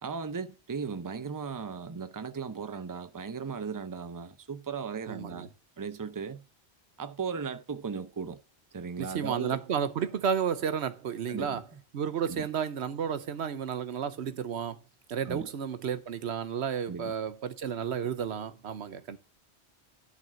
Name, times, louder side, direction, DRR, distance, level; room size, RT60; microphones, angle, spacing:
voice 1, 0.0-5.5 5.8-6.4 7.0-8.4 8.7-9.6 11.3-11.8 12.3-12.5 15.2-15.5 16.9-17.1, right 5 dB, 20° right, 0.7 m, -37 dB
voice 2, 5.1-5.5 9.0-11.6 11.9-14.8 15.1-19.2, right 7 dB, 80° right, 1.1 m, -32 dB
11.0 x 3.8 x 6.2 m
omnidirectional pair, 1.1 m